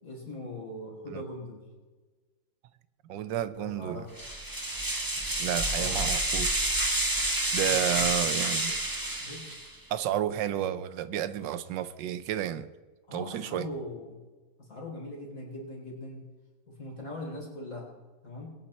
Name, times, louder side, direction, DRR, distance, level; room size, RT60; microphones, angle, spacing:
voice 1, 0.0-1.6 3.5-4.1 5.8-6.1 7.6-8.1 9.2-9.4 13.1-14.2 14.6-16.2 16.7-17.9 18.2-18.5, left 1 dB, 45° left, -2 dB, 4.5 m, -41 dB
voice 2, 3.1-4.1 5.4-6.6 7.5-8.8 9.9-12.7 13.1-13.7, right 10 dB, 85° right, 14 dB, 1.3 m, -31 dB
sound 1, 4.2-9.7, right 1 dB, 15° right, 1.1 m, -29 dB
21.5 x 9.3 x 4.3 m, 1.3 s
omnidirectional pair, 1.9 m